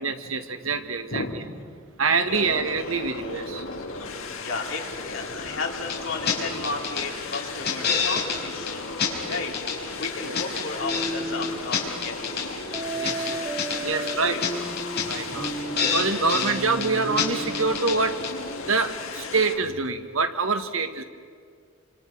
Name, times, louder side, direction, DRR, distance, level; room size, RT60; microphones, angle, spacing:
voice 1, 0.0-1.2 2.0-3.6 9.3-9.4 10.2-10.6 13.0-13.4 13.8-14.6 15.1-15.5 15.9-18.1 18.6-21.0, right 4 dB, 85° right, 7 dB, 1.7 m, -26 dB
voice 2, 1.1-1.8 2.3-2.4 4.3-8.9 9.3-9.5 9.9-12.6 13.4-13.7 14.3-14.4 14.8-15.5, left 3 dB, 70° left, 0 dB, 3.9 m, -34 dB
sound 1, 2.3-19.6, left 3 dB, 90° left, 2.3 m, -36 dB
sound 2, 5.9-6.0 6.3-6.4 6.6-7.1 7.3-8.4 8.7-8.8 9.0-9.8 10.0-11.1 11.4-12.5 12.7-13.8 14.1-14.2 14.4-14.5 14.8-15.2 15.4-15.5 15.8-16.5 16.8-16.9 17.2-17.3 17.5-18.0 18.2-18.3, left 6 dB, 55° left, 5.0 m, -27 dB
sound 3, 10.8-11.6 12.7-17.8, right 2 dB, 20° right, 2.8 m, -33 dB
28.5 x 26.0 x 6.2 m, 2.1 s
head